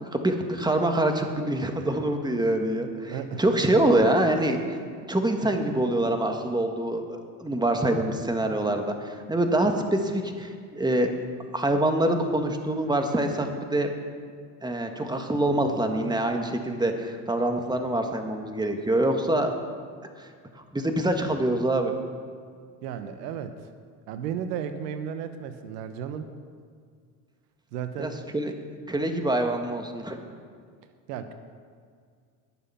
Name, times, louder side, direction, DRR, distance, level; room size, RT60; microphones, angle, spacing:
voice 1, 0.0-4.8 5.1-11.1 11.5-13.9 14.6-19.5 20.7-21.9 28.0-28.5 28.9-30.2, right 1 dB, 10° right, 4 dB, 1.8 m, -25 dB
voice 2, 3.1-3.4 22.8-23.6 24.1-26.3 27.7-28.2 31.1-31.3, right 8 dB, 80° right, 9 dB, 1.1 m, -34 dB
20.5 x 7.3 x 5.8 m, 2.1 s
hypercardioid pair, 75°, 47 cm